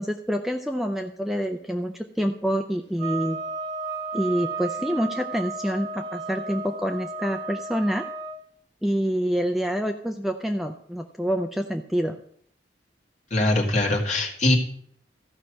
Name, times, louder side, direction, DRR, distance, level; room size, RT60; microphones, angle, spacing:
voice 1, 0.0-3.4 4.1-8.1 8.8-12.2, equal, ahead, 5 dB, 0.5 m, -27 dB
sound 1, 3.0-8.4, right 3 dB, 85° right, 1.7 m, -33 dB
voice 2, 13.3-14.6, left 1 dB, 40° left, 0 dB, 2.1 m, -22 dB
14.5 x 5.7 x 6.3 m, 0.65 s
head